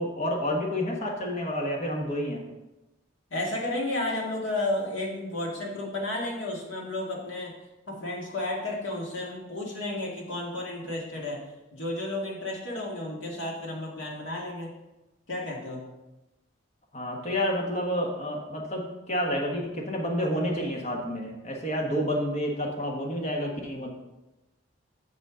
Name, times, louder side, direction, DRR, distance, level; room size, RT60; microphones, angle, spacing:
voice 1, 0.0-2.4 16.9-24.0, equal, 35° left, 0 dB, 1.3 m, -29 dB
voice 2, 3.3-7.6 7.9-11.4 11.7-14.7 15.3-15.9, left 1 dB, 80° left, -2 dB, 1.9 m, -32 dB
8.1 x 7.0 x 3.8 m, 1.0 s
head